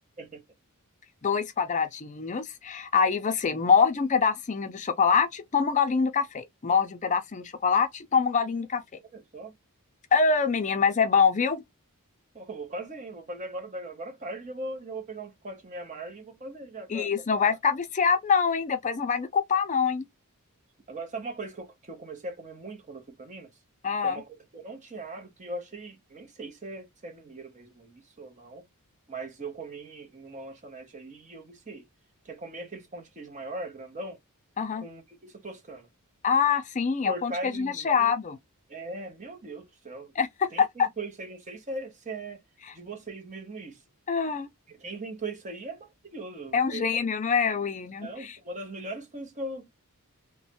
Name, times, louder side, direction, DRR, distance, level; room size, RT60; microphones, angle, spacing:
voice 1, 1.2-8.8 10.1-11.6 16.9-20.1 23.8-24.2 34.6-34.9 36.2-38.4 40.2-40.9 42.7-42.8 44.1-44.5 46.5-48.4, left 6 dB, 35° left, 0.5 m, -25 dB
voice 2, 9.1-9.5 12.3-17.2 20.9-23.5 24.0-28.6 29.1-31.9 32.2-34.2 34.8-35.9 37.0-38.1 38.7-40.1 40.5-42.4 42.7-43.8 44.7-47.0 48.0-49.7, right 2 dB, 35° right, 0.8 m, -39 dB
3.1 x 2.1 x 2.9 m
head